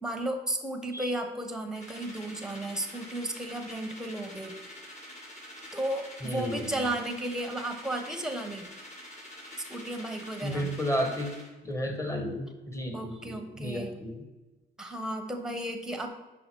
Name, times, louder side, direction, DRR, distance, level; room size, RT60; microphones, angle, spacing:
voice 1, 0.0-4.6 5.7-8.7 9.6-10.7 12.9-13.9 14.8-16.1, right 1 dB, 5° right, 4 dB, 1.0 m, -34 dB
sound 1, 1.7-11.5, left 1 dB, 35° left, 2.1 m, -46 dB
voice 2, 6.2-6.7 10.4-11.3 11.6-14.2, equal, 15° left, 4 dB, 1.3 m, -32 dB
5.7 x 5.2 x 4.5 m, 1.1 s
cardioid pair, 90°, 20 cm